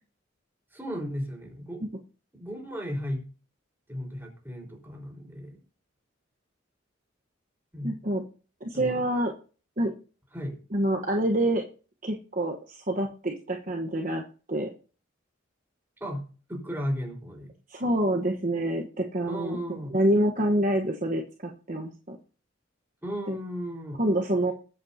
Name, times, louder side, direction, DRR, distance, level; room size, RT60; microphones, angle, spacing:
voice 1, 0.7-1.8 2.3-3.3 3.9-5.6 7.7-8.0 8.7-9.0 10.3-10.6 16.0-17.5 19.3-20.0 23.0-24.0, equal, 10° right, 0 dB, 4.5 m, -35 dB
voice 2, 7.8-8.2 8.6-9.3 9.8-9.9 10.7-11.6 12.0-14.2 14.5-14.7 17.7-22.2 23.3-23.4 24.0-24.5, right 1 dB, 40° right, 2 dB, 1.2 m, -27 dB
21.0 x 8.5 x 2.8 m, 0.37 s
head